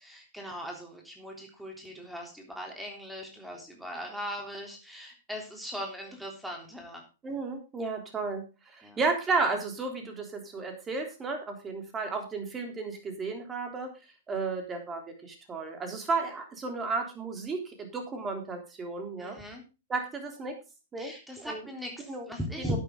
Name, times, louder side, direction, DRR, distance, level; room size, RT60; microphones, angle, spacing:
voice 1, 0.0-7.0 8.8-9.0 19.2-19.6 21.0-22.8, equal, 5° right, 1 dB, 3.4 m, -39 dB
voice 2, 7.2-8.4 8.7-13.9 14.3-19.4 19.9-20.6 20.9-21.6 22.1-22.3 22.6-22.8, right 4 dB, 20° right, 4 dB, 3.4 m, -33 dB
12.5 x 8.9 x 3.8 m, 0.30 s
hypercardioid pair, 110°, 0 cm